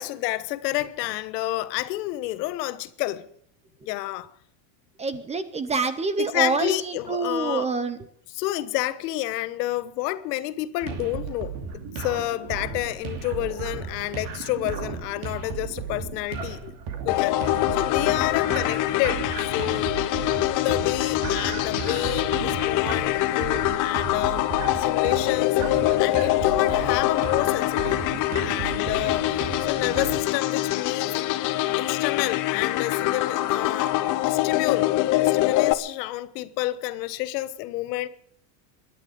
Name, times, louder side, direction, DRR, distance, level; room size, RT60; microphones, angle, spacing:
voice 1, 0.0-3.3 3.8-4.3 6.2-7.7 8.3-16.8 17.0-19.9 20.4-28.0 28.4-31.1 31.8-33.9 34.3-34.9 35.2-38.1, left 16 dB, 75° left, 1.3 m, -29 dB
voice 2, 5.0-8.0, right 4 dB, 15° right, 0.6 m, -26 dB
sound 1, 10.8-30.2, right 5 dB, 45° right, 2.8 m, -34 dB
sound 2, 17.1-35.7, left 15 dB, 40° left, 1.0 m, -24 dB
23.0 x 11.0 x 5.1 m
cardioid pair, 160°, 49 cm